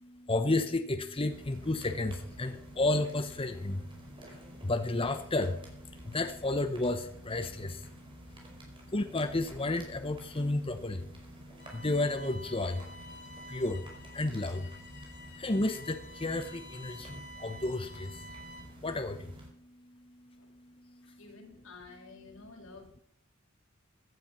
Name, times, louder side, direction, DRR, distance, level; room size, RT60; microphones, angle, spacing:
voice 1, 0.0-7.9 8.9-12.9 13.5-13.9 14.1-14.8 15.4-18.3 18.8-19.3 21.1-21.2, left 2 dB, 25° left, 8 dB, 0.9 m, -32 dB
sound 1, 1.3-19.5, equal, 25° right, 4.7 m, -50 dB
Bowed string instrument, 11.6-18.8, left 1 dB, 55° left, 2.9 m, -50 dB
voice 2, 21.2-23.0, left 4 dB, 85° left, 0 dB, 5.5 m, -51 dB
16.0 x 12.0 x 5.9 m, 0.63 s
head